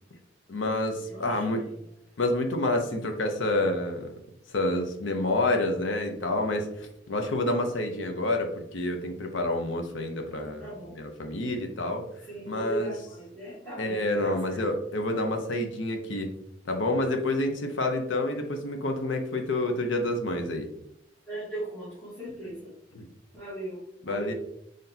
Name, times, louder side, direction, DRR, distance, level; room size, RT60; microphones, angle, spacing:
voice 1, 0.5-1.6 2.2-4.1 4.5-10.7 11.0-12.0 12.5-12.9 13.8-16.3 16.7-20.7 22.9-23.1 24.1-24.3, left 1 dB, 85° left, 4 dB, 0.7 m, -28 dB
voice 2, 1.1-1.8 10.3-11.0 12.3-14.6 21.3-22.7 23.3-24.3, right 1 dB, 10° left, -11 dB, 1.3 m, -38 dB
3.9 x 3.3 x 2.7 m, 0.78 s
head